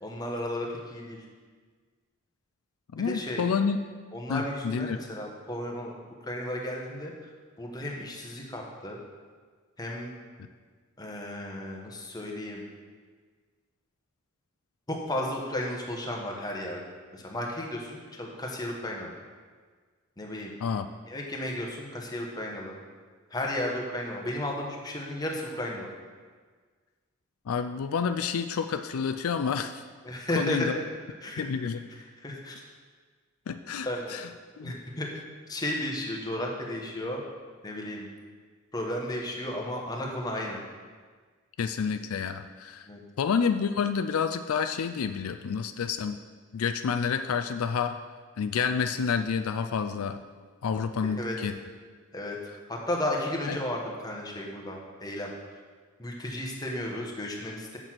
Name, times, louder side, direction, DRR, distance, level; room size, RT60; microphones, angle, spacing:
voice 1, 0.0-1.2 3.0-3.4 4.1-5.9 6.2-7.1 7.6-9.0 9.8-10.1 11.0-12.6 14.9-19.1 20.2-20.6 21.1-22.8 23.3-25.9 30.0-30.7 31.2-31.4 32.2-32.6 33.8-34.2 34.6-35.1 35.5-37.2 37.6-38.1 38.7-40.6 42.9-43.0 51.1-51.4 52.1-52.4 52.7-55.3 56.0-57.8, left 1 dB, 20° left, -1 dB, 1.2 m, -34 dB
voice 2, 2.9-3.8 4.3-5.0 20.6-20.9 27.5-29.8 30.4-30.8 31.4-31.8 33.5-34.3 34.6-34.7 41.6-42.8 43.2-46.2 46.5-48.0 48.4-50.2 50.6-51.6 53.5-53.6, left 6 dB, 80° left, 8 dB, 0.4 m, -29 dB
6.6 x 6.2 x 7.5 m, 1.6 s
head